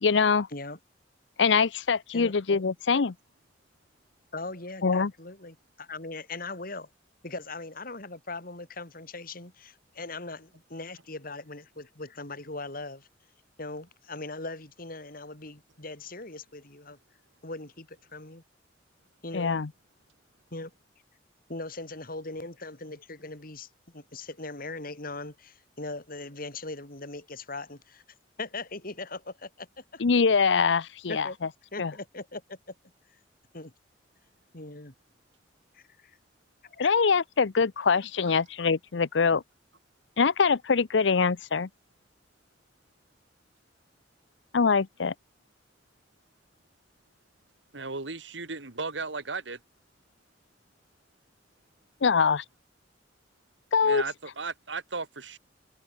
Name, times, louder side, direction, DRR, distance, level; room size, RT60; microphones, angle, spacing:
voice 1, 0.0-0.5 1.4-3.1 4.8-5.1 19.3-19.7 30.0-31.3 31.8-31.9 36.8-39.4 40.2-41.7 44.5-45.1 52.0-52.4 53.7-54.0, left 5 dB, 80° left, 0.7 m, -23 dB
voice 2, 2.1-2.6 4.3-6.9 7.2-13.1 13.6-17.0 17.4-18.4 19.2-19.6 20.5-20.7 21.5-28.0 28.4-30.0 31.1-31.4 31.7-32.6 33.5-33.7 34.5-34.9 35.7-36.2 36.6-36.9, left 2 dB, 50° left, 4.6 m, -40 dB
voice 3, 47.7-49.6 53.8-55.4, right 4 dB, 90° right, 2.5 m, -35 dB
head